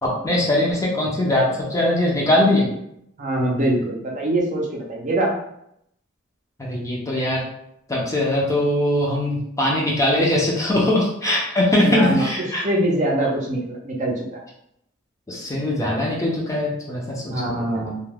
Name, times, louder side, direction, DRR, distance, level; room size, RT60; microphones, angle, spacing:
voice 1, 0.0-2.7 6.6-7.4 7.9-12.6 15.3-17.8, left 1 dB, 15° left, -3 dB, 0.5 m, -21 dB
voice 2, 3.2-5.3 10.7-10.9 11.8-12.3 12.6-14.4 17.3-18.0, right 1 dB, 35° right, -2 dB, 0.5 m, -23 dB
2.3 x 2.2 x 3.3 m, 0.76 s
head